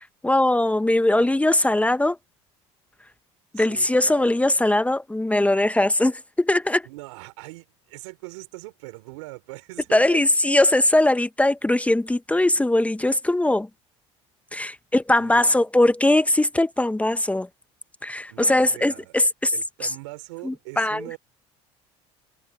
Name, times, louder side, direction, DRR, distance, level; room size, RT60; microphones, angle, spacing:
voice 1, 0.2-2.2 3.5-6.9 9.9-13.7 14.5-17.5 18.0-19.5 19.8-19.9 20.4-21.1, left 1 dB, 10° left, 1.0 m, -20 dB
voice 2, 1.1-1.5 3.5-4.3 6.8-10.2 15.2-15.5 18.3-19.1 19.5-21.2, right 23 dB, 85° right, 4.9 m, -41 dB
supercardioid pair, 80°, 15 cm